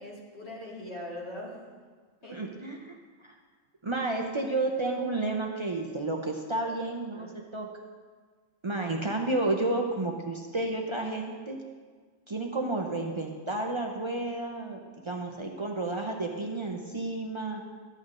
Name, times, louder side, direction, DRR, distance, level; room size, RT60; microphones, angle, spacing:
voice 1, 0.0-1.6 2.2-2.4 6.6-6.7 7.1-7.3, left 1 dB, 50° left, -6 dB, 2.3 m, -41 dB
voice 2, 2.3-2.9 3.2-3.3 3.8-7.7 8.6-11.6 12.3-14.8 15.1-17.6, right 2 dB, 50° right, 1 dB, 0.3 m, -31 dB
13.0 x 7.7 x 2.5 m, 1.5 s
omnidirectional pair, 1.4 m